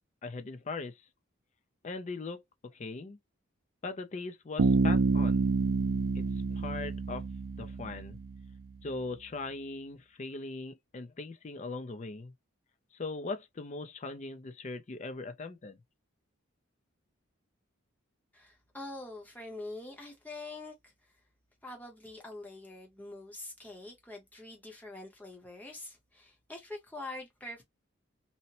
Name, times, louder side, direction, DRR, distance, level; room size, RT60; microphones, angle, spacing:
voice 1, 0.2-0.9 1.8-2.4 2.7-3.2 3.8-5.4 6.2-6.3 6.5-7.2 7.6-8.2 8.8-12.3 13.0-15.8, left 3 dB, 35° left, 0.4 m, -39 dB
Bass guitar, 4.6-8.3, right 4 dB, 80° right, 0.4 m, -28 dB
voice 2, 18.3-20.9 21.6-27.6, left 2 dB, 10° left, 0.7 m, -45 dB
2.7 x 2.1 x 2.8 m
head